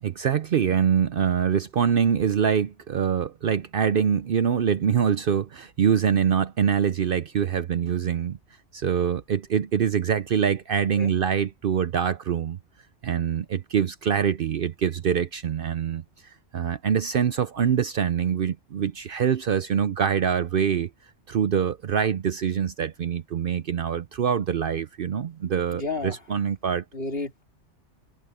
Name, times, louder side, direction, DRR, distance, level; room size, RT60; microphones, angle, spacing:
voice 1, 0.0-8.4 8.7-12.6 13.0-16.0 16.5-20.9 21.3-26.8, right 8 dB, 55° right, 0.7 m, -24 dB
voice 2, 25.7-26.2 26.9-27.4, left 3 dB, 55° left, 2.9 m, -31 dB
omnidirectional pair, 1.2 m